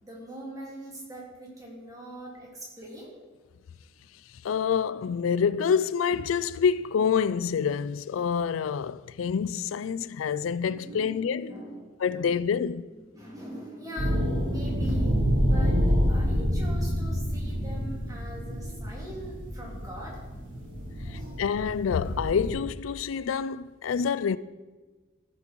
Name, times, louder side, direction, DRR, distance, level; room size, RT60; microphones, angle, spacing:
voice 1, 0.0-3.2 10.6-11.2 11.5-12.3 13.1-15.8 16.1-20.2 21.0-21.4, equal, 20° right, 3.4 m, -42 dB
voice 2, 4.4-11.5 12.0-12.8 21.1-24.4, left 6 dB, 85° left, 0.4 m, -27 dB
sound 1, 14.0-22.5, equal, 75° right, 3.2 m, -27 dB
15.0 x 7.5 x 4.6 m
head